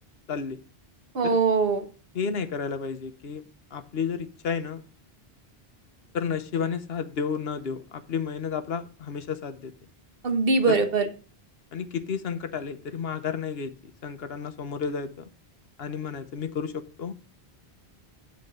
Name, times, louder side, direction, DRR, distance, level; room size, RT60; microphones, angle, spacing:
voice 1, 0.3-0.6 1.2-1.4 2.1-3.4 3.7-4.8 6.1-9.7 10.7-10.8 11.7-13.7 14.0-15.3 15.8-17.1, left 6 dB, 75° left, 10 dB, 1.1 m, -31 dB
voice 2, 1.1-1.9 10.2-11.1, right 4 dB, 65° right, 6 dB, 1.4 m, -22 dB
9.3 x 4.1 x 6.5 m, 0.38 s
omnidirectional pair, 1.0 m